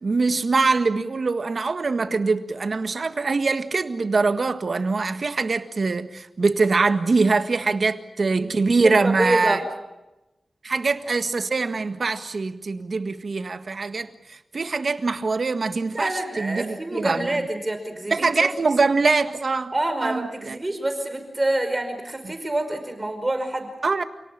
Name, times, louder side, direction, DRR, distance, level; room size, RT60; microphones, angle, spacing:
voice 1, 0.0-9.6 10.6-17.4 18.1-19.7 20.0-20.6 23.8-24.0, right 4 dB, 60° right, 1.7 m, -23 dB
voice 2, 8.8-9.6 15.9-18.5 19.7-23.7, right 1 dB, 25° right, 5.2 m, -27 dB
28.0 x 18.0 x 8.9 m
cardioid pair, 65°, 0 cm